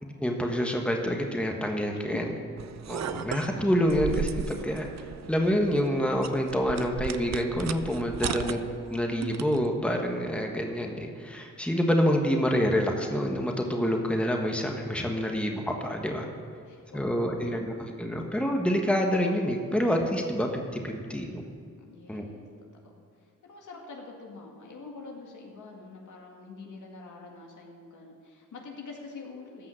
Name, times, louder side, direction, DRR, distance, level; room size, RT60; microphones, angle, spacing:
voice 1, 0.0-2.3 2.9-4.9 5.3-8.6 8.9-16.3 16.9-17.7 18.0-21.4 22.1-22.2, equal, 5° left, 2 dB, 1.4 m, -27 dB
sound 1, 2.6-9.7, right 9 dB, 60° right, 0.5 m, -37 dB
voice 2, 8.2-8.5 16.7-17.6 21.9-22.5 22.8-23.0 23.5-29.7, left 4 dB, 75° left, 0 dB, 2.1 m, -44 dB
14.0 x 5.7 x 7.6 m, 2.2 s
cardioid pair, 70°, 31 cm